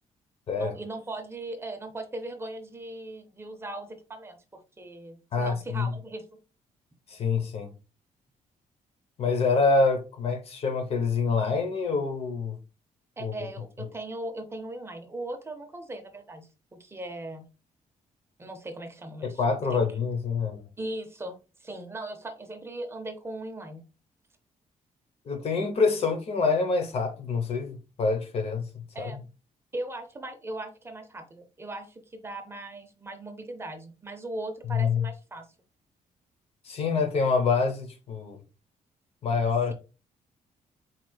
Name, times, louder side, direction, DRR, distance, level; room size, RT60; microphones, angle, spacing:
voice 1, 0.6-6.3 13.2-17.5 18.4-20.0 20.8-23.8 28.9-29.2 29.7-35.5, right 2 dB, 20° right, 0.6 m, -39 dB
voice 2, 5.3-5.9 7.1-7.7 9.2-12.6 13.2-13.3 19.2-20.6 25.3-28.7 29.0-29.2 34.7-35.1 36.7-38.4 39.2-39.7, left 4 dB, 50° left, 0.8 m, -26 dB
4.8 x 4.3 x 2.3 m
cardioid pair, 180°, 14 cm